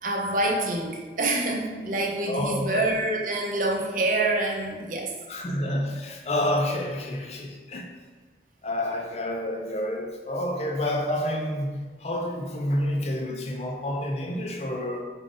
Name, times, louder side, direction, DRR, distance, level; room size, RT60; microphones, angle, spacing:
voice 1, 0.0-5.1, right 2 dB, 50° right, 1 dB, 0.6 m, -26 dB
voice 2, 2.3-2.8 5.3-7.9 8.6-15.0, left 1 dB, 35° left, 3 dB, 0.4 m, -29 dB
5.0 x 2.4 x 3.7 m, 1.4 s
head